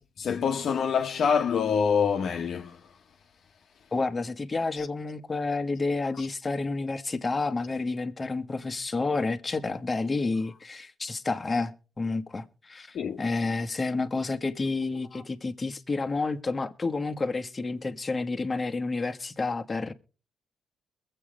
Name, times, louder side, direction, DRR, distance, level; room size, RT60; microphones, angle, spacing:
voice 1, 0.2-2.8 4.8-4.9 6.2-6.3 12.9-13.2 15.1-15.2, left 6 dB, 60° left, 1.0 m, -26 dB
voice 2, 3.9-19.9, left 3 dB, 25° left, 1.1 m, -30 dB
22.5 x 7.7 x 3.7 m
cardioid pair, 90°, 0 cm